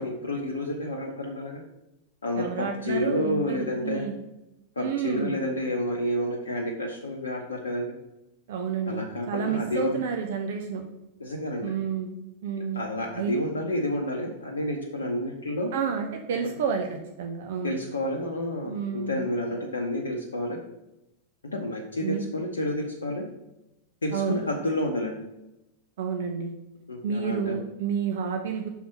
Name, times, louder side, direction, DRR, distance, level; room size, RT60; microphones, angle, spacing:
voice 1, 0.0-1.6 2.2-4.1 4.8-7.9 8.9-9.9 11.2-11.7 12.6-15.7 17.6-20.6 21.5-23.3 24.0-25.2 26.9-27.6, left 1 dB, 75° left, 0 dB, 0.9 m, -30 dB
voice 2, 2.4-4.1 4.8-5.4 8.5-9.0 9.3-10.8 11.6-12.2 12.4-12.8 13.2-13.3 15.7-17.7 18.7-19.2 22.0-22.2 24.1-24.4 26.0-26.5 27.0-28.7, right 6 dB, 55° right, 4 dB, 0.8 m, -30 dB
5.9 x 4.1 x 6.0 m, 0.93 s
figure-of-eight pair, 90°, 0 cm